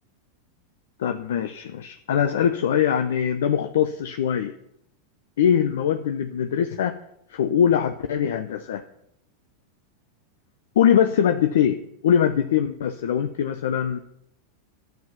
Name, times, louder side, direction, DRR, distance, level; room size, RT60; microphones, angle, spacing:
voice 1, 1.0-4.6 5.4-7.0 7.3-8.8 10.8-14.0, left 8 dB, 75° left, 8 dB, 0.8 m, -22 dB
12.0 x 9.3 x 5.9 m, 0.77 s
hypercardioid pair, 100°, 0 cm